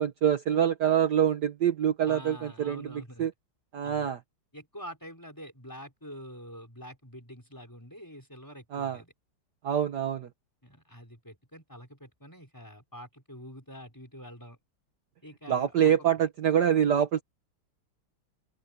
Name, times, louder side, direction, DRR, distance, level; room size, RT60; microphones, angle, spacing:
voice 1, 0.0-2.9 3.2-3.3 3.7-4.2 8.7-9.0 9.6-10.3 15.5-17.2, right 9 dB, 55° right, 1.5 m, -25 dB
voice 2, 2.1-3.3 3.8-4.1 4.5-9.1 10.6-14.6 15.2-15.9, equal, 10° left, 4.8 m, -46 dB
open air
omnidirectional pair, 2.4 m